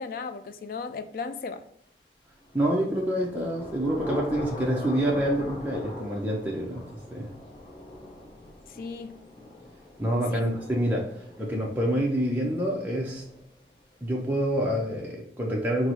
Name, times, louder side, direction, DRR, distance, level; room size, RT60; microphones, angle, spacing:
voice 1, 0.0-1.6 8.7-9.2 10.3-10.5, left 4 dB, 50° left, 0.3 m, -35 dB
Thunder / Rain, 2.4-14.0, left 2 dB, 30° left, 0.7 m, -42 dB
voice 2, 2.5-7.3 10.0-13.2 14.0-15.9, right 1 dB, 10° right, 0.4 m, -27 dB
4.5 x 2.0 x 4.0 m
head